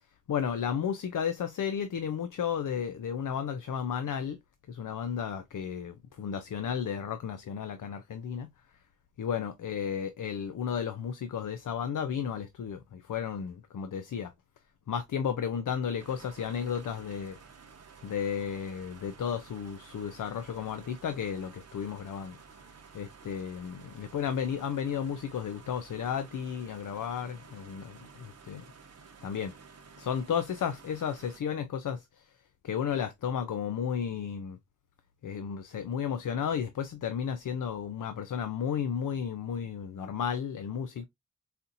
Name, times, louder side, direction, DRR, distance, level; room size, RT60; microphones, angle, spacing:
voice 1, 0.3-4.4 4.7-8.5 9.2-14.3 14.9-17.4 18.0-22.4 22.9-28.6 29.2-29.5 30.0-32.2 32.6-34.6 35.2-41.1, left 7 dB, 75° left, 0.5 m, -33 dB
sound 1, 16.0-31.4, right 5 dB, 50° right, 0.8 m, -53 dB
4.1 x 2.6 x 2.5 m
wide cardioid pair, 70°, 32 cm